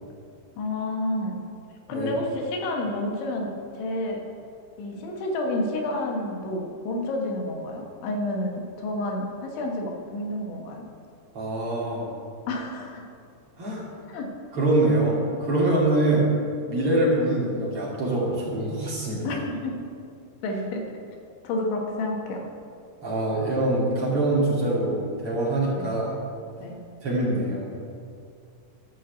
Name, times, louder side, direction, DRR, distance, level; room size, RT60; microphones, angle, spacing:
voice 1, 0.6-1.4 1.9-4.2 4.8-10.9 12.5-13.1 14.1-14.3 16.1-16.3 19.2-19.9 20.4-20.9 21.4-22.4 25.8-25.9 26.6-26.8, left 1 dB, 85° left, 1 dB, 3.9 m, -30 dB
voice 2, 11.3-12.1 13.6-13.9 14.5-16.3 16.7-19.3 23.0-26.2 27.0-27.7, right 2 dB, 35° right, -6 dB, 2.9 m, -24 dB
13.0 x 6.2 x 7.9 m, 2.3 s
omnidirectional pair, 5.2 m